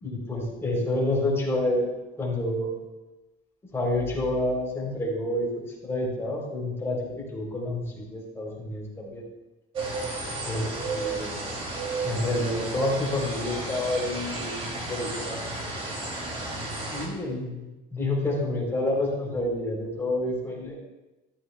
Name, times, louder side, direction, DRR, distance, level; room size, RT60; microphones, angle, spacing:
voice 1, 0.0-2.7 3.7-9.2 10.5-11.4 12.0-15.5 16.9-20.7, left 1 dB, 15° left, -4 dB, 3.4 m, -29 dB
sound 1, 9.7-17.1, right 2 dB, 35° right, 2.7 m, -33 dB
14.0 x 12.5 x 2.3 m, 1.0 s
cardioid pair, 170°, 18 cm